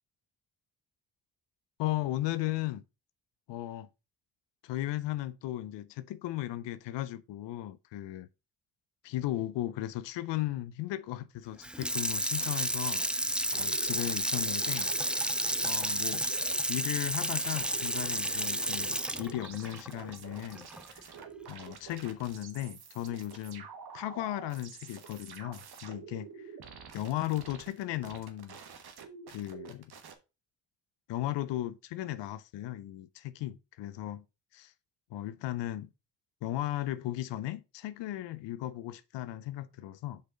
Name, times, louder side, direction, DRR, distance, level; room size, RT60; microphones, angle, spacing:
voice 1, 1.8-2.8 3.5-3.9 4.6-8.3 9.0-13.1 13.5-14.9 15.6-16.3 16.7-21.1 21.5-23.7 23.9-26.5 26.9-28.6 29.3-29.9 31.1-34.2 34.5-34.7 35.1-35.9 36.4-40.2, left 14 dB, 85° left, 0.5 m, -36 dB
Water tap faucet / Sink (filling or washing), 11.6-20.8 21.2-21.3, right 1 dB, 5° right, 0.4 m, -31 dB
sound 1, 12.4-16.8 17.3-30.2, right 6 dB, 65° right, 1.3 m, -48 dB
5.2 x 4.1 x 5.2 m
cardioid pair, 60°, 42 cm